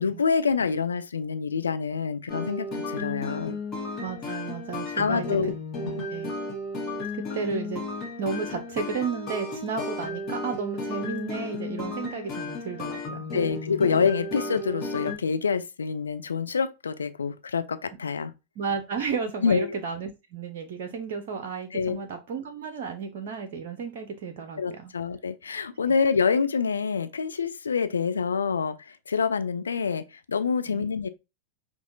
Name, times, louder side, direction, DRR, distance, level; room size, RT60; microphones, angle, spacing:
voice 1, 0.0-3.6 5.0-5.5 5.8-6.1 13.3-18.3 19.4-19.8 21.7-22.0 24.6-31.1, left 5 dB, 70° left, 0.3 m, -26 dB
sound 1, 2.3-15.2, left 2 dB, 35° left, 1.2 m, -34 dB
voice 2, 4.0-5.5 6.1-6.3 7.1-7.8 8.2-13.3 18.6-24.9 25.8-25.9 30.7-30.9, right 5 dB, 50° right, 0.5 m, -33 dB
5.5 x 2.3 x 2.6 m
figure-of-eight pair, 90°, 0 cm